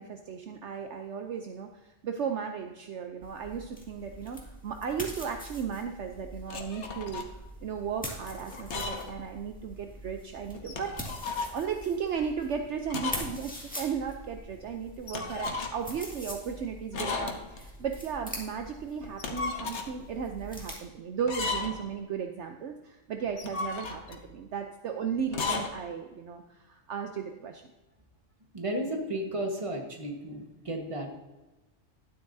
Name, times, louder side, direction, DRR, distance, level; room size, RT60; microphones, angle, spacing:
voice 1, 0.0-7.3 7.6-27.6, right 7 dB, 65° right, 5 dB, 0.9 m, -35 dB
sound 1, 3.2-20.8, equal, 5° left, 2.0 m, -44 dB
sound 2, 6.5-7.3 8.5-9.2 9.5-9.6 10.5-11.6 12.9-13.4 13.6-13.7 15.1-15.9 16.9-17.7 19.0-19.9 21.2-21.9 23.3-24.2 25.3-25.7, left 4 dB, 60° left, 1.3 m, -34 dB
voice 2, 28.5-31.1, right 1 dB, 25° right, 2 dB, 1.4 m, -33 dB
12.0 x 9.7 x 2.7 m, 1.1 s
omnidirectional pair, 1.4 m